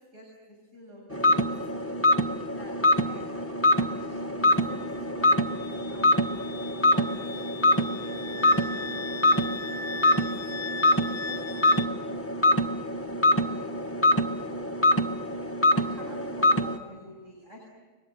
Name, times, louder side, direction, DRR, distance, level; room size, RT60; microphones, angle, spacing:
voice 1, 0.0-2.0 2.5-2.7 3.0-3.2 3.8-7.5 8.0-9.5 9.8-12.6 13.3-13.7 15.7-17.6, equal, 70° right, -2 dB, 7.6 m, -48 dB
sound 1, 1.1-16.8, left 1 dB, 10° left, 1.1 m, -25 dB
Wind instrument woodwind instrument, 4.6-11.9, left 4 dB, 35° left, 1.2 m, -39 dB
30.0 x 23.5 x 7.9 m, 1.4 s
omnidirectional pair, 1.3 m